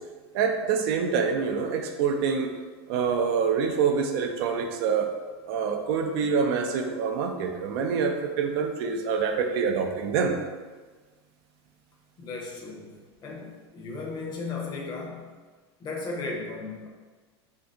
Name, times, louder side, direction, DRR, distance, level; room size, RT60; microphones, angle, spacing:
voice 1, 0.3-2.5 2.9-5.1 5.5-10.4, right 6 dB, 60° right, 4 dB, 0.4 m, -26 dB
voice 2, 12.2-13.0 13.2-15.4 15.8-16.9, left 3 dB, 30° left, 0 dB, 0.7 m, -35 dB
2.7 x 2.6 x 3.4 m, 1.4 s
supercardioid pair, 120°, 14 cm